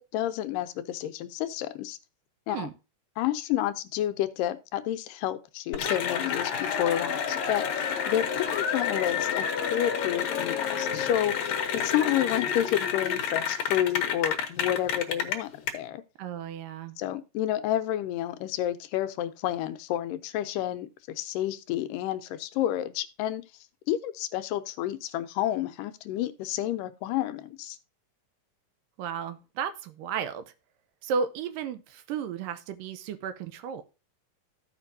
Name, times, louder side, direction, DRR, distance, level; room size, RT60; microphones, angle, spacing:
voice 1, 0.0-2.0 2.5-2.7 3.2-7.7 8.1-16.0 17.0-23.4 23.9-27.8, left 12 dB, 85° left, 2.2 m, -30 dB
Cheering / Applause, 5.7-15.7, left 7 dB, 65° left, 2.0 m, -29 dB
voice 2, 16.2-17.0 29.0-30.4 31.0-33.8, right 6 dB, 90° right, 2.4 m, -33 dB
15.0 x 5.2 x 2.7 m
omnidirectional pair, 3.9 m